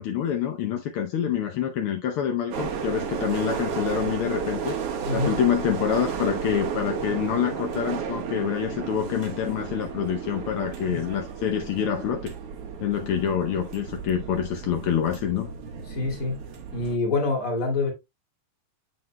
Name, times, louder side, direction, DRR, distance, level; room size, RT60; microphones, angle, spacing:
voice 1, 0.0-4.8 5.1-12.3 12.8-15.5, left 9 dB, 70° left, 1.3 m, -26 dB
sound 1, 2.5-17.0, right 6 dB, 60° right, 2.1 m, -33 dB
voice 2, 15.9-16.4 16.7-17.9, left 3 dB, 30° left, 2.4 m, -26 dB
7.7 x 7.5 x 2.2 m
omnidirectional pair, 3.3 m